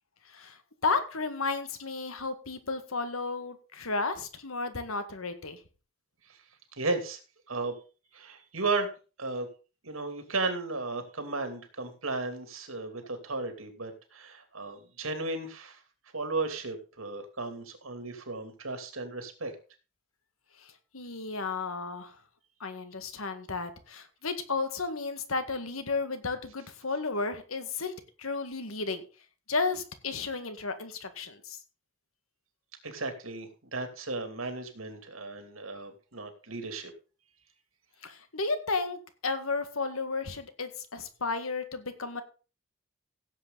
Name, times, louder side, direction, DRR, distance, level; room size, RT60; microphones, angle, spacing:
voice 1, 0.3-5.6 20.6-22.2 22.6-29.0 29.5-31.6 38.0-42.2, left 4 dB, 90° left, 9 dB, 1.9 m, -33 dB
voice 2, 6.7-7.2 7.5-7.8 8.1-8.9 9.2-9.5 9.8-15.8 16.1-19.5 32.8-36.9, right 3 dB, 85° right, 6 dB, 2.7 m, -34 dB
16.5 x 7.9 x 4.0 m, 0.34 s
head